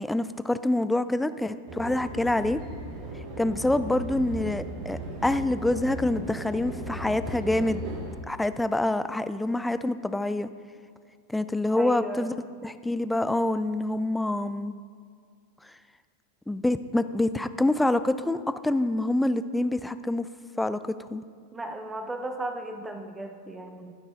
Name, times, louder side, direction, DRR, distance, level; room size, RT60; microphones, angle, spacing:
voice 1, 0.0-2.6 3.4-7.8 8.3-10.5 11.3-12.3 12.6-14.7 16.5-20.3 20.6-20.8 21.1-21.2, left 1 dB, 5° left, 12 dB, 0.3 m, -26 dB
sound 1, 1.7-8.2, right 1 dB, 45° right, 1.5 m, -37 dB
voice 2, 11.7-12.3 21.5-23.9, right 1 dB, 10° right, 5 dB, 1.0 m, -35 dB
15.0 x 6.2 x 3.8 m, 2.2 s
figure-of-eight pair, 90°, 0 cm